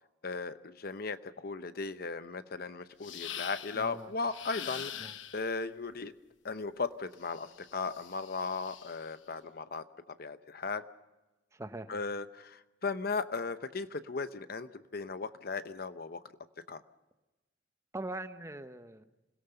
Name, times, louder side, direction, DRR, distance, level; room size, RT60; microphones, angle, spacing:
voice 1, 0.2-6.1 6.4-10.8 11.9-16.2 16.7-16.8, left 4 dB, 55° left, 12 dB, 0.8 m, -37 dB
sound 1, 3.0-3.9 4.3-5.5 7.2-9.1, left 10 dB, 90° left, 1.0 m, -44 dB
voice 2, 3.7-4.1 5.0-5.1 11.5-11.9 17.9-19.0, right 2 dB, 15° right, 9 dB, 0.9 m, -42 dB
26.5 x 17.5 x 6.8 m, 1.1 s
head